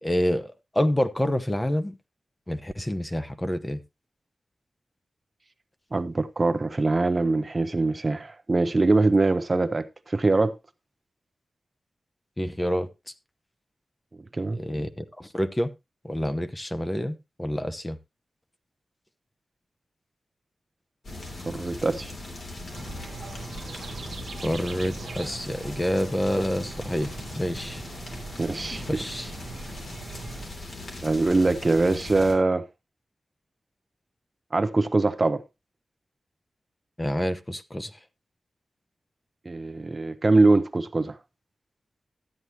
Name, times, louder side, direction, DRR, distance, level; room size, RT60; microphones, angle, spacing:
voice 1, 0.0-2.0 2.5-3.8 12.4-12.9 14.6-15.7 16.0-18.0 24.4-27.1 27.4-27.8 28.9-29.3 37.0-37.9, equal, 10° left, 0.7 m, -27 dB
voice 2, 5.9-10.6 14.3-14.6 21.5-22.1 28.4-29.0 31.0-32.7 34.5-35.4 39.5-41.2, right 3 dB, 30° right, 0.6 m, -23 dB
sound 1, 21.0-32.3, left 2 dB, 60° left, 3.2 m, -40 dB
sound 2, 22.7-30.5, right 4 dB, 70° right, 1.0 m, -41 dB
13.0 x 9.6 x 2.9 m
wide cardioid pair, 160°, 0 cm